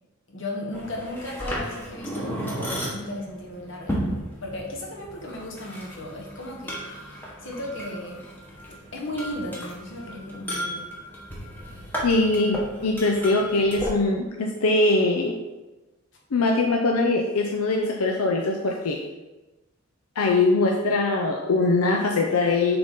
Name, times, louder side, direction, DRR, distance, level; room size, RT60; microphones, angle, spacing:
voice 1, 0.3-4.0 4.4-8.2 8.9-10.9, left 1 dB, 60° left, -1 dB, 1.3 m, -35 dB
sound 1, 0.7-13.9, equal, 10° left, 1.0 m, -35 dB
voice 2, 12.0-15.3 16.3-19.0 20.2-22.8, left 2 dB, 90° left, 1 dB, 0.6 m, -22 dB
6.7 x 4.0 x 3.7 m, 1.1 s
head